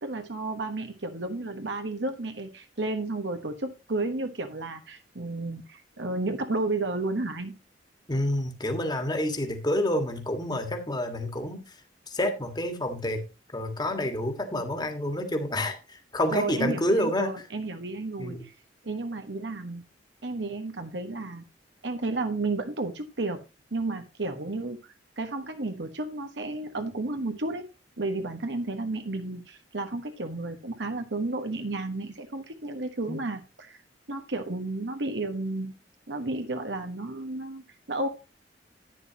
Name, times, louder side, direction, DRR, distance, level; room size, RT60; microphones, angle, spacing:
voice 1, 0.0-7.6 16.3-18.4 18.8-19.8 20.2-21.4 21.8-23.4 23.7-24.8 25.2-27.6 28.0-33.8 34.1-35.7 36.1-38.1, right 2 dB, 80° right, 7 dB, 1.3 m, -32 dB
voice 2, 8.1-11.7 12.1-13.2 13.5-17.3 18.2-18.4 33.1-33.2, left 1 dB, 25° left, 6 dB, 1.7 m, -28 dB
10.5 x 9.5 x 2.9 m, 0.27 s
head